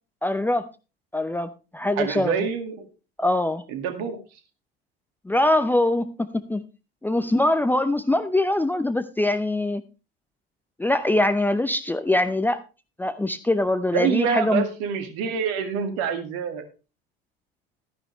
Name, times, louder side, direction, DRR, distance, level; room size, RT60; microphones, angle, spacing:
voice 1, 0.2-0.7 1.1-2.5 3.2-3.6 5.2-6.6 7.0-9.8 10.8-12.6 13.0-14.6, left 1 dB, 5° left, 10 dB, 0.7 m, -23 dB
voice 2, 2.0-2.9 3.7-4.2 13.9-16.6, right 7 dB, 55° right, 8 dB, 2.2 m, -26 dB
13.0 x 10.5 x 3.3 m, 0.32 s
figure-of-eight pair, 70°, 31 cm